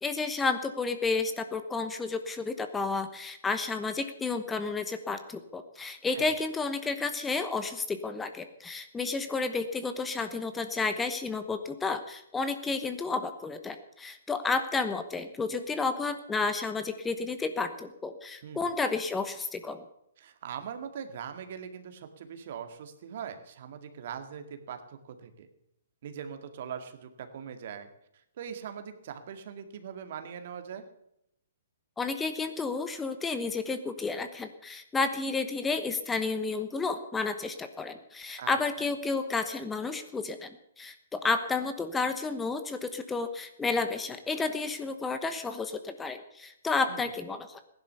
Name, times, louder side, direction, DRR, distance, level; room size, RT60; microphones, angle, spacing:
voice 1, 0.0-19.8 32.0-47.6, left 4 dB, 10° left, 9 dB, 1.1 m, -31 dB
voice 2, 20.2-25.5 26.0-27.9 28.4-30.9 38.4-38.5 46.9-47.0, right 8 dB, 55° right, 7 dB, 2.0 m, -41 dB
16.0 x 11.0 x 6.9 m, 0.79 s
hypercardioid pair, 125°, 0 cm